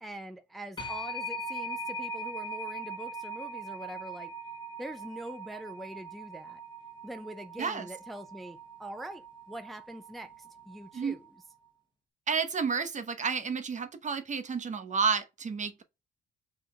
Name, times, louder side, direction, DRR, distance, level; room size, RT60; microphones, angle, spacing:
voice 1, 0.0-4.3 4.8-6.6 7.0-11.3, right 1 dB, ahead, 0.5 m, -43 dB
sound 1, 0.8-11.4, right 1 dB, 25° left, 1.0 m, -41 dB
voice 2, 12.3-15.8, right 5 dB, 35° right, 0.8 m, -31 dB
3.9 x 3.3 x 3.9 m
cardioid pair, 90°, 20 cm